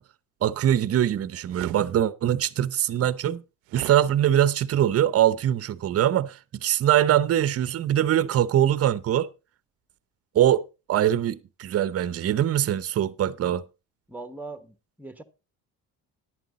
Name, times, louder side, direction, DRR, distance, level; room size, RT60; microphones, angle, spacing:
voice 1, 0.4-3.4 3.7-9.3 10.3-10.6 10.9-13.6, right 11 dB, 45° right, 0.8 m, -22 dB
sound 1, 1.5-1.8 3.7-4.0, right 17 dB, 75° right, 0.7 m, -37 dB
voice 2, 14.1-15.2, right 3 dB, 5° right, 1.2 m, -40 dB
11.0 x 9.2 x 4.1 m
supercardioid pair, 85°, 34 cm